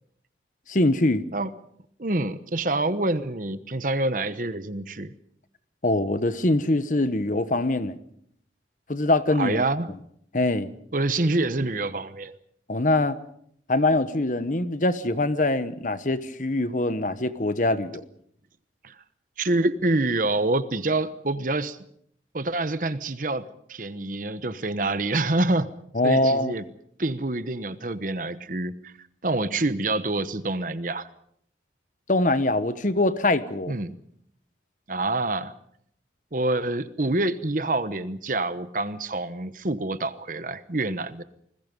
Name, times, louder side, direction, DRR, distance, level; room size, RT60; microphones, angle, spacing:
voice 1, 0.7-1.2 5.8-8.0 8.9-9.6 10.3-10.7 12.7-13.2 13.7-18.0 25.9-26.5 32.1-33.7, left 2 dB, 45° left, 1.1 m, -23 dB
voice 2, 2.0-5.1 9.4-9.9 10.9-12.4 18.8-19.0 19.4-21.8 22.3-25.7 26.0-26.6 27.0-28.9 29.2-31.1 33.7-33.9 34.9-35.5 36.3-41.2, right 2 dB, 45° right, 1.0 m, -26 dB
28.5 x 20.5 x 5.4 m
head